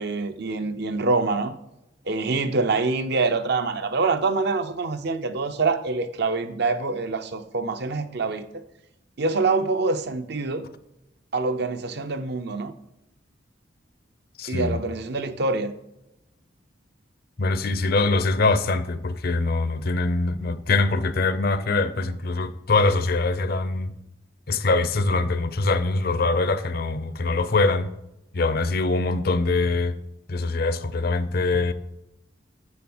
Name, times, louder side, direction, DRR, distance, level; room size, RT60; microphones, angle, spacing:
voice 1, 0.0-1.5 2.1-8.6 9.2-10.6 11.3-12.7 14.5-15.7, right 3 dB, 60° right, 0.7 m, -25 dB
voice 2, 14.4-14.8 17.4-23.9 24.5-27.9 28.3-29.9 30.3-31.7, left 3 dB, 55° left, 0.6 m, -23 dB
7.2 x 6.8 x 6.1 m
head